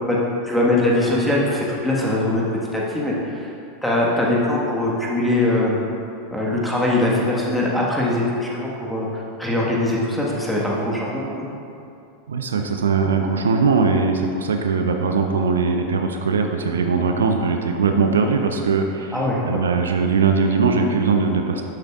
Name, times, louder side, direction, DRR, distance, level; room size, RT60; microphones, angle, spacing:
voice 1, 0.4-2.4 2.7-3.5 3.8-5.8 6.3-11.3 19.1-19.6, left 1 dB, 5° left, -5 dB, 1.5 m, -21 dB
voice 2, 12.3-21.6, right 4 dB, 70° right, 4 dB, 0.5 m, -20 dB
11.5 x 6.6 x 2.4 m, 2.6 s
figure-of-eight pair, 85°, 0 cm